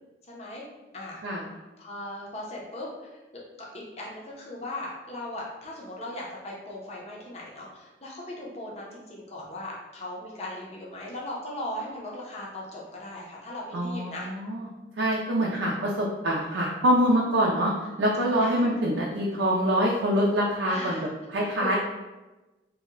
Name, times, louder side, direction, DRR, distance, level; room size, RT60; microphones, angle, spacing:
voice 1, 0.3-0.6 0.9-1.2 1.8-3.2 3.6-14.3 15.1-15.6 18.3-18.6 20.7-21.0 21.6-21.8, left 1 dB, 35° left, -4 dB, 0.5 m, -38 dB
voice 2, 13.7-14.7 15.0-17.7 18.0-21.0 21.3-21.8, equal, 80° right, -3 dB, 0.4 m, -25 dB
2.7 x 2.1 x 3.6 m, 1.1 s
head